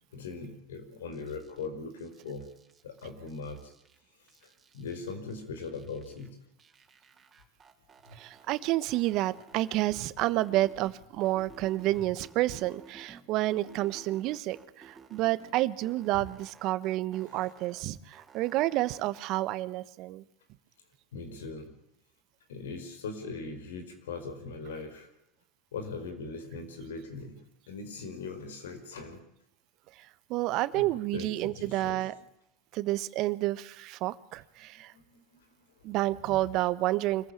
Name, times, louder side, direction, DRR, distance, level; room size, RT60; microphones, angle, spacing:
voice 1, 0.1-2.4 2.8-3.6 4.7-6.3 8.1-8.2 11.9-12.0 16.1-16.2 17.3-17.4 21.1-21.7 22.5-25.1 25.7-27.4 27.7-29.2 30.7-32.0 34.9-35.2 36.2-36.4, left 4 dB, 90° left, 7 dB, 4.9 m, -40 dB
sound 1, 1.1-1.7 2.0-4.0 4.3-6.3 6.6-8.6 8.9-10.9 11.2-13.2 13.5-15.5 15.8-17.8 18.1-19.3, right 5 dB, 25° right, 4.3 m, -54 dB
voice 2, 8.2-20.2 30.3-32.1 32.7-34.9 35.8-37.3, right 16 dB, 60° right, 16 dB, 1.2 m, -29 dB
25.5 x 15.0 x 8.5 m, 0.80 s
hypercardioid pair, 95°, 0 cm